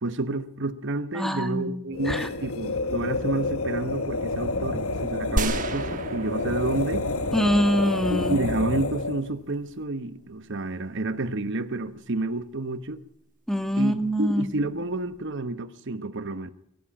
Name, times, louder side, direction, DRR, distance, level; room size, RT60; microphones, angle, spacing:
voice 1, 0.0-7.1 8.1-13.0 13.8-16.5, right 2 dB, 55° right, 1.0 m, -30 dB
voice 2, 1.1-1.8 2.1-2.3 7.3-8.4 13.5-14.6, equal, ahead, 1.8 m, -24 dB
sound 1, 1.9-9.3, left 2 dB, 70° left, 1.3 m, -29 dB
sound 2, 5.4-8.3, right 2 dB, 35° right, 1.3 m, -32 dB
22.5 x 15.0 x 8.7 m
head